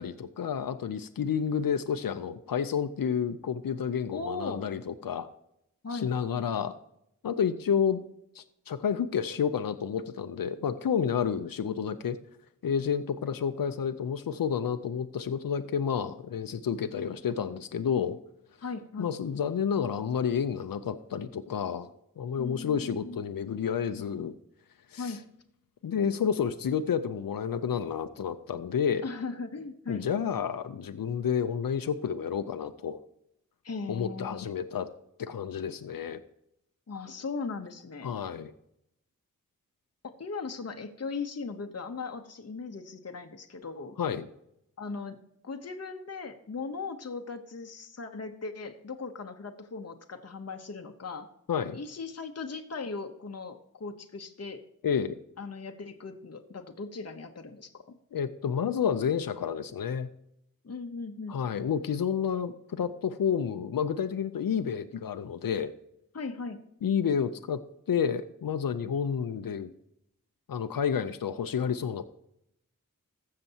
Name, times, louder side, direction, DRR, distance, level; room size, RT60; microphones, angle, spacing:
voice 1, 0.0-5.3 5.9-6.8 7.2-8.0 8.3-12.2 12.6-18.2 19.0-24.3 24.9-25.2 25.8-29.1 29.9-33.0 33.9-34.9 35.2-36.2 38.0-38.5 44.0-44.3 51.5-51.8 54.8-55.2 58.1-60.1 61.3-65.7 66.8-67.6 67.9-69.7 70.5-72.0, left 7 dB, 90° left, 9 dB, 0.6 m, -30 dB
voice 2, 4.1-4.6 5.8-6.1 18.6-19.1 22.4-23.2 25.0-25.2 29.0-30.1 33.6-34.5 36.9-38.2 40.0-44.0 44.8-51.3 51.7-54.6 55.4-58.0 60.6-61.4 66.1-66.6, left 4 dB, 50° left, 5 dB, 0.9 m, -38 dB
15.0 x 6.6 x 2.8 m, 0.76 s
wide cardioid pair, 60°, 33 cm